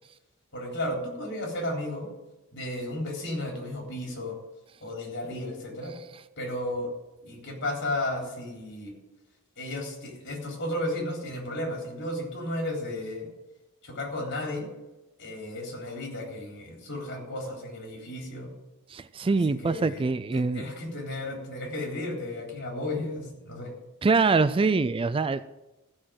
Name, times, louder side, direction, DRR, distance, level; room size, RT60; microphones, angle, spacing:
voice 1, 0.5-2.1 2.5-4.4 4.8-5.9 6.4-6.9 7.2-8.9 9.6-13.3 13.8-14.7 15.2-18.5 19.5-20.1 20.3-23.7, left 1 dB, 55° left, 0 dB, 3.8 m, -33 dB
voice 2, 18.9-20.7 24.0-25.5, right 4 dB, 25° right, 14 dB, 0.3 m, -24 dB
14.5 x 6.4 x 7.6 m, 1.0 s
head